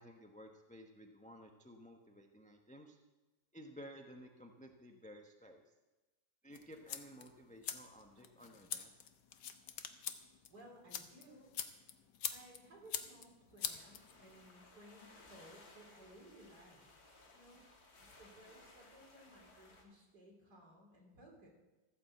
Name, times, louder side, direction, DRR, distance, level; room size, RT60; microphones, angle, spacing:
voice 1, 0.0-3.0 3.5-5.6 6.4-9.0, equal, 5° left, 3 dB, 0.6 m, -55 dB
sound 1, 6.5-14.5, left 8 dB, 70° left, 1.5 m, -46 dB
voice 2, 10.5-11.5 12.3-16.9 17.3-17.6 18.2-21.5, right 1 dB, 55° right, -1 dB, 4.3 m, -59 dB
sound 2, 13.6-19.8, left 2 dB, 55° left, 2.7 m, -61 dB
14.5 x 9.6 x 7.9 m, 1.1 s
omnidirectional pair, 2.0 m